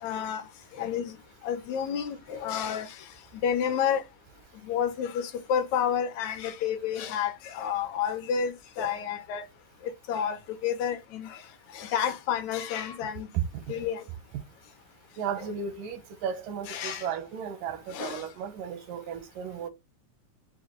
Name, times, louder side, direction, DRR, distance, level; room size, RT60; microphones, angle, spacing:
voice 1, 0.0-0.5 0.7-1.2 1.4-3.1 3.4-4.0 4.6-9.5 9.8-11.4 11.7-13.3 13.7-14.0 15.4-15.5 16.7-17.1 17.9-18.3, left 8 dB, 75° left, 1.8 m, -30 dB
voice 2, 15.2-19.7, right 8 dB, 85° right, 2.5 m, -34 dB
6.4 x 2.2 x 3.0 m
omnidirectional pair, 3.7 m